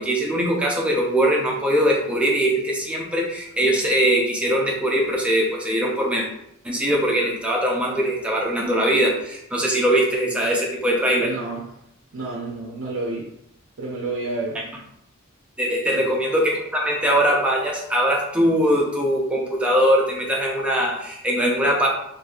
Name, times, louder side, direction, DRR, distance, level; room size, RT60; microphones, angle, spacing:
voice 1, 0.0-6.3 6.6-11.3 15.6-21.9, equal, 5° right, -3 dB, 0.6 m, -21 dB
voice 2, 11.2-11.6 12.1-13.2 13.8-14.6 15.9-16.1, right 2 dB, 65° right, -3 dB, 0.6 m, -30 dB
4.1 x 2.6 x 2.4 m, 0.79 s
head